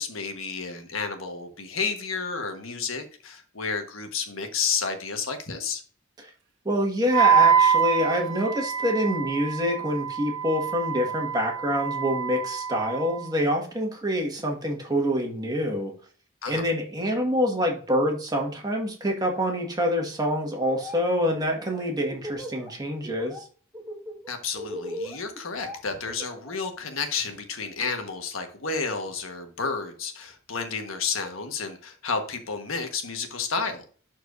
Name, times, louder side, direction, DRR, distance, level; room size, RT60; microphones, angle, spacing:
voice 1, 0.0-5.8 16.4-16.7 24.3-33.9, left 5 dB, 85° left, 6 dB, 1.3 m, -31 dB
voice 2, 6.6-15.9 16.5-23.4, equal, 20° right, 1 dB, 1.7 m, -26 dB
Wind instrument woodwind instrument, 7.1-13.3, right 7 dB, 65° right, 1.2 m, -25 dB
Laughter, 20.5-21.0 21.3-22.7 23.0-23.4 23.7-26.6, equal, ahead, 1.8 m, -38 dB
11.5 x 4.5 x 2.6 m, 0.41 s
head